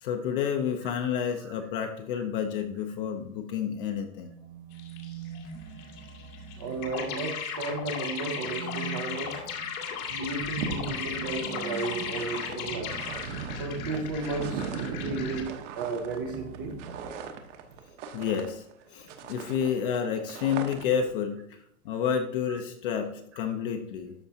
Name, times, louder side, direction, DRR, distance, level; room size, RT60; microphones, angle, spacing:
voice 1, 0.0-4.3 18.1-18.6 18.9-21.4 21.8-24.1, left 7 dB, 40° left, 5 dB, 0.6 m, -30 dB
sound 1, 4.2-7.6 8.2-14.8 15.8-17.8, right 6 dB, 80° right, 1.3 m, -44 dB
sound 2, 4.8-5.5 5.8-15.4, left 7 dB, 80° left, 2.1 m, -36 dB
voice 2, 6.6-9.4 10.1-12.9 13.6-15.5 15.8-16.7, right 3 dB, 15° right, 4 dB, 0.3 m, -33 dB
sound 3, 9.6-9.7 9.9-18.8 19.1-21.1, right 6 dB, 60° right, 1.0 m, -39 dB
13.0 x 4.5 x 2.7 m, 0.72 s
supercardioid pair, 170°, 42 cm